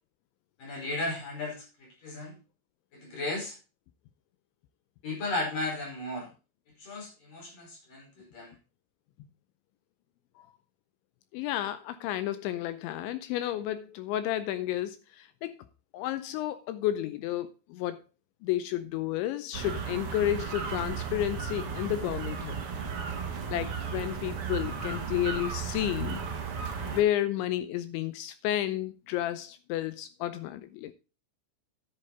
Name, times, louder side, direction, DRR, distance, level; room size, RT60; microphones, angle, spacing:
voice 1, 0.6-2.3 2.9-3.6 5.0-6.3 6.8-8.6, left 2 dB, 45° left, 6.0 m, -35 dB
voice 2, 11.3-15.6 15.9-18.0 18.4-22.6 23.5-26.2 26.8-30.9, left 12 dB, 80° left, 2.8 m, -31 dB
sound 1, 19.5-27.0, right 6 dB, 80° right, 1.2 m, -35 dB
10.5 x 8.8 x 4.0 m
omnidirectional pair, 5.8 m